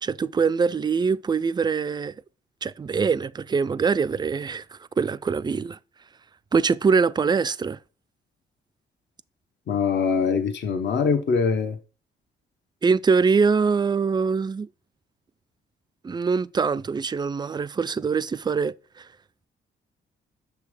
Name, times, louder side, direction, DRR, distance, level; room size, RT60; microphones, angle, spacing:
voice 1, 0.0-2.2 2.6-5.8 6.5-7.8 12.8-14.7 16.0-19.1, right 5 dB, 20° right, 0.3 m, -23 dB
voice 2, 9.7-11.8, left 5 dB, 60° left, 1.0 m, -23 dB
6.3 x 3.4 x 4.8 m
hypercardioid pair, 50°, 21 cm